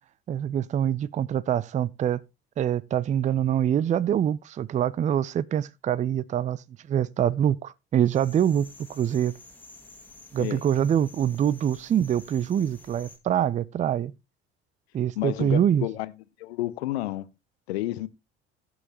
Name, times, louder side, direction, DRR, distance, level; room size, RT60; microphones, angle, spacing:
voice 1, 0.3-2.2 2.6-6.6 6.9-9.4 10.3-14.1 14.9-15.9, right 9 dB, 25° right, 0.4 m, -25 dB
sound 1, 8.0-13.2, left 2 dB, 5° left, 2.2 m, -50 dB
voice 2, 15.2-16.1 16.4-17.3 17.7-18.1, left 16 dB, 70° left, 0.7 m, -30 dB
16.5 x 6.4 x 2.9 m
figure-of-eight pair, 55°, 33 cm